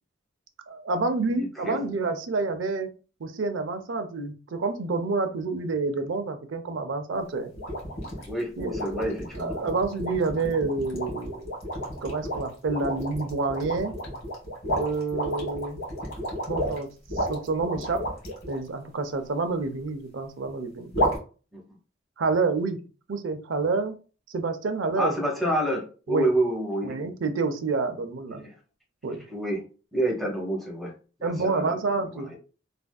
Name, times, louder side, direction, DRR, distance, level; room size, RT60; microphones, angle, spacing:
voice 1, 0.7-2.9 3.2-7.5 8.6-8.7 9.4-11.5 12.0-13.9 14.7-15.8 16.5-16.9 17.2-18.0 18.5-20.9 22.2-22.8 23.1-23.9 24.3-25.1 26.1-26.3 26.8-28.4 29.0-29.2 31.2-32.3, right 3 dB, 70° right, 8 dB, 0.5 m, -28 dB
voice 2, 1.3-1.8 8.2-9.6 21.5-21.6 25.0-27.0 28.3-28.5 29.3-29.6 29.9-30.9 31.2-31.7 32.0-32.4, right 1 dB, ahead, -2 dB, 0.9 m, -28 dB
sound 1, 7.6-18.6 20.9-21.2, equal, 85° left, 1.6 m, -31 dB
3.3 x 2.5 x 2.2 m, 0.36 s
head